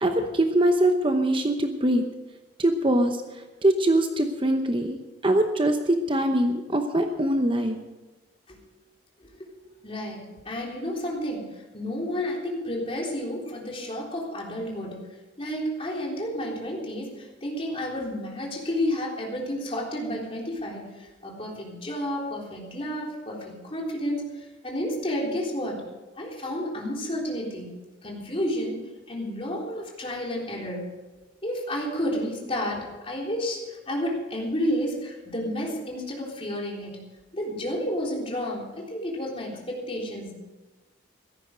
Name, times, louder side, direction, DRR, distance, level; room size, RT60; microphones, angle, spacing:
voice 1, 0.0-2.0 2.6-3.2 3.6-5.0 5.2-7.8, right 1 dB, 25° right, 5 dB, 0.9 m, -22 dB
voice 2, 9.2-9.5 9.8-15.1 15.4-25.8 26.2-27.8 28.0-28.8 29.1-30.9 31.4-37.0 37.3-40.3, equal, 30° left, -2 dB, 3.6 m, -31 dB
16.0 x 13.5 x 5.1 m, 1.2 s
head